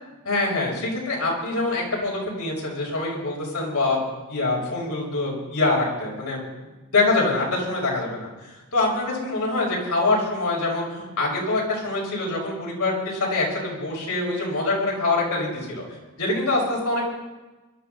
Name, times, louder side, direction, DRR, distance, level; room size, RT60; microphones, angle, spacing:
voice 1, 0.2-6.5 6.9-8.3 8.7-15.8 16.2-17.1, left 2 dB, 85° left, -3 dB, 6.0 m, -25 dB
22.5 x 12.5 x 4.2 m, 1.1 s
head